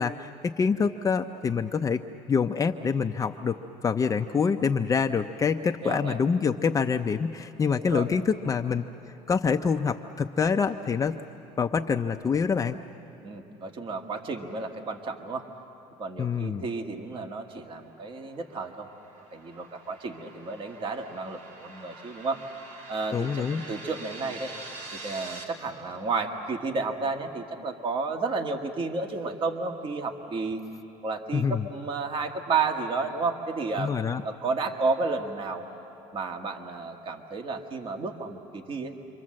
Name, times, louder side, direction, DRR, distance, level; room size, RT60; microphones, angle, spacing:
voice 1, 0.0-2.0 2.3-8.8 9.3-11.2 11.6-12.8 16.2-16.6 23.1-23.6 31.3-31.7 33.8-34.2, left 6 dB, 25° left, 5 dB, 0.6 m, -26 dB
voice 2, 5.8-6.2 7.8-8.1 13.2-15.5 16.0-18.9 19.3-22.4 22.9-24.5 24.9-30.6 31.0-33.9 34.2-35.7 36.1-39.0, right 4 dB, 40° right, 5 dB, 1.6 m, -32 dB
sound 1, 17.7-25.4, right 2 dB, 75° right, 3.2 m, -45 dB
28.5 x 24.0 x 7.6 m, 3.0 s
cardioid pair, 110°, 14 cm